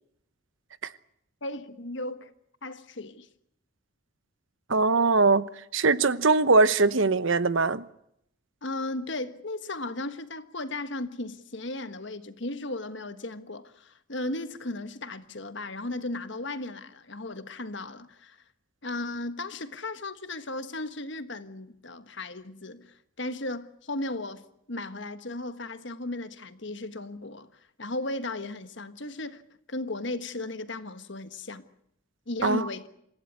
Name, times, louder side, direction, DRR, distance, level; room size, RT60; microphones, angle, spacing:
voice 1, 1.4-2.3 2.6-3.3 8.6-18.4 18.8-27.5 27.8-29.4 29.7-31.7 32.3-32.9, left 2 dB, 60° left, 1.5 m, -36 dB
voice 2, 4.7-5.5 5.7-7.8 32.4-32.6, right 3 dB, 65° right, 0.9 m, -21 dB
27.0 x 16.0 x 9.6 m
head